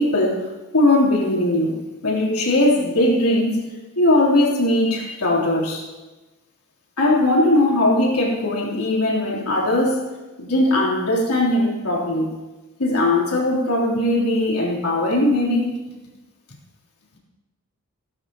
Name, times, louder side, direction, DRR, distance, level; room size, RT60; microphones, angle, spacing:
voice 1, 0.0-3.6 4.0-5.8 7.0-10.0 10.4-12.3 12.8-15.8, left 1 dB, 85° left, -3 dB, 3.4 m, -19 dB
17.0 x 12.5 x 3.0 m, 1.1 s
head